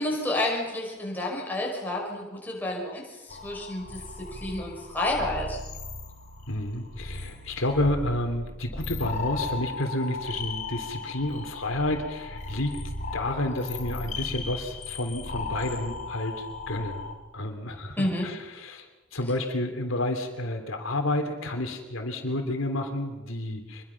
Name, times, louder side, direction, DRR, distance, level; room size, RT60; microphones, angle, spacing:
voice 1, 0.0-4.0 4.3-5.6 18.0-18.3, left 1 dB, 10° left, -2 dB, 5.7 m, -30 dB
sound 1, 3.3-17.1, left 3 dB, 35° left, 3.8 m, -36 dB
voice 2, 6.5-12.8 13.1-17.0 17.3-23.8, left 1 dB, 80° left, 4 dB, 3.1 m, -30 dB
26.0 x 22.0 x 5.9 m, 1.1 s
head